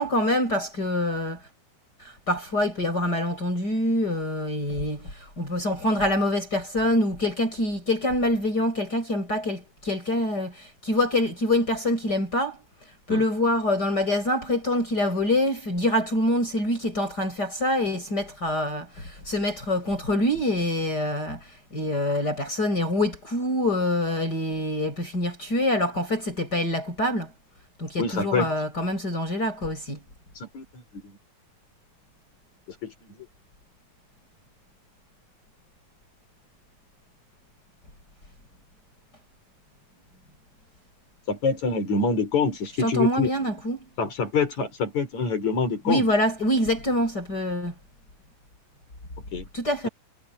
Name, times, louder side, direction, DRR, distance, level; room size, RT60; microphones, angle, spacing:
voice 1, 0.0-1.5 2.0-12.6 13.1-27.3 27.8-30.0 42.8-43.9 45.9-47.7 49.5-49.9, left 1 dB, 25° left, 7.6 m, -25 dB
voice 2, 28.0-28.5 30.4-31.2 32.8-33.2 41.3-43.3 44.0-46.1 49.3-49.4, left 4 dB, 50° left, 6.3 m, -26 dB
omnidirectional pair, 4.2 m